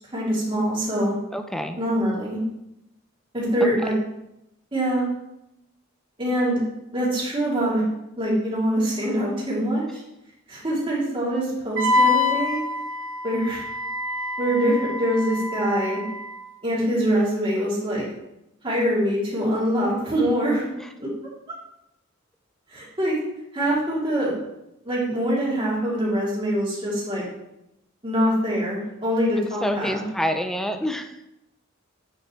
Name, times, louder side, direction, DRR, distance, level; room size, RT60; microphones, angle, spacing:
voice 1, 0.1-1.1 1.8-2.4 3.3-4.0 4.7-5.1 6.2-6.6 6.9-7.8 8.2-10.0 10.5-12.6 13.2-13.6 14.4-16.0 16.6-18.1 18.6-20.7 21.0-21.1 22.7-23.2 23.5-24.3 24.8-27.2 28.0-30.0, equal, 25° right, -6 dB, 2.9 m, -24 dB
voice 2, 1.3-1.8 3.6-3.7 20.8-20.9 29.6-31.1, equal, ahead, 7 dB, 0.5 m, -27 dB
Wind instrument woodwind instrument, 11.8-16.4, left 3 dB, 65° right, 0.9 m, -26 dB
9.1 x 6.5 x 3.2 m, 0.86 s
head